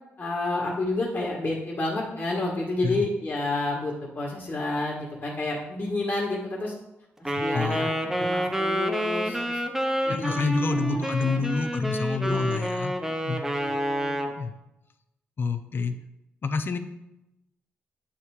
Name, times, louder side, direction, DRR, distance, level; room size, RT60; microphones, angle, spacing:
voice 1, 0.2-6.7 7.2-9.6 10.0-11.5 12.1-12.8 13.6-14.3, left 2 dB, 35° left, -3 dB, 1.5 m, -30 dB
Wind instrument woodwind instrument, 7.2-14.4, equal, 10° right, 0.8 m, -28 dB
voice 2, 7.5-8.2 10.1-12.9 13.2-13.4 14.4-14.5 15.4-16.0 16.4-16.8, left 4 dB, 50° left, 8 dB, 0.6 m, -28 dB
8.7 x 3.3 x 4.8 m, 0.92 s
cardioid pair, 80°, 5 cm